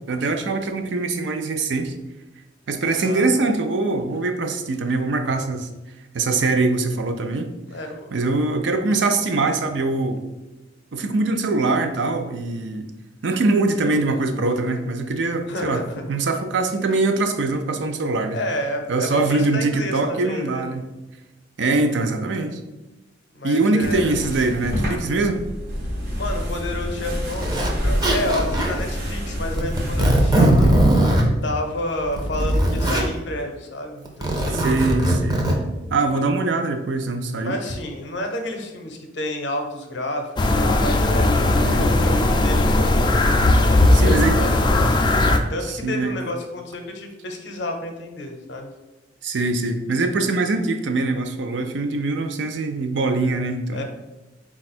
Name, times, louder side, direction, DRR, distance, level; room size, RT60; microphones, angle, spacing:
voice 1, 0.1-1.9 2.7-5.7 6.1-7.5 8.1-10.2 10.9-12.9 13.2-18.4 18.9-20.9 21.6-22.6 23.4-25.4 34.5-35.5 35.9-37.6 41.6-41.9 43.9-44.3 45.7-46.1 49.2-53.8, right 3 dB, 75° right, 6 dB, 0.5 m, -23 dB
voice 2, 2.9-3.5 7.7-8.1 15.5-16.0 18.3-20.6 23.3-24.1 26.2-31.0 31.4-35.1 37.4-41.3 41.6-43.4 43.7-48.7 53.7-53.8, left 1 dB, 70° left, 4 dB, 0.7 m, -30 dB
sound 1, 23.8-30.9, equal, 60° right, 1.0 m, -27 dB
Zipper (clothing), 26.4-26.5 27.3-27.7 28.0-28.8 29.5-31.3 32.0-33.1 34.1-35.5, right 1 dB, 20° right, 0.6 m, -19 dB
sound 2, 40.4-45.4, left 2 dB, 25° left, 0.3 m, -17 dB
4.2 x 2.4 x 4.2 m, 1.1 s
head